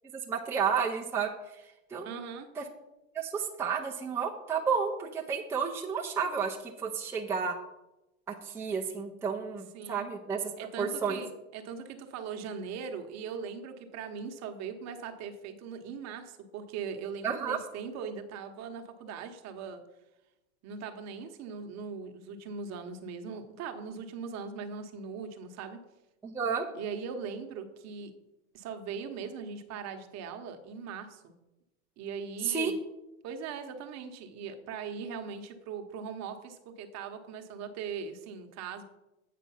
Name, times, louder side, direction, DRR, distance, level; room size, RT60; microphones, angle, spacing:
voice 1, 0.3-2.1 2.6-2.7 3.1-7.5 8.3-10.5 10.8-11.2 17.2-17.6 26.2-26.6 32.4-32.7, right 6 dB, 5° right, -2 dB, 0.6 m, -31 dB
voice 2, 2.0-2.5 9.7-10.1 10.6-19.8 20.6-25.8 26.7-28.1 28.5-31.3 32.0-32.7 33.2-38.8, right 6 dB, 40° right, 6 dB, 1.1 m, -40 dB
8.4 x 4.9 x 5.6 m, 0.96 s
supercardioid pair, 125°, 41 cm